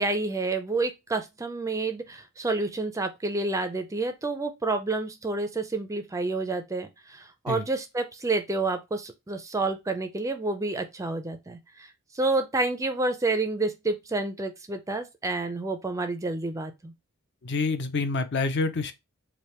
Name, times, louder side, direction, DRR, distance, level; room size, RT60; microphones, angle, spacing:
voice 1, 0.0-16.9, right 3 dB, 15° right, 0.4 m, -29 dB
voice 2, 17.4-18.9, left 3 dB, 50° left, 0.5 m, -27 dB
3.3 x 2.5 x 4.3 m
head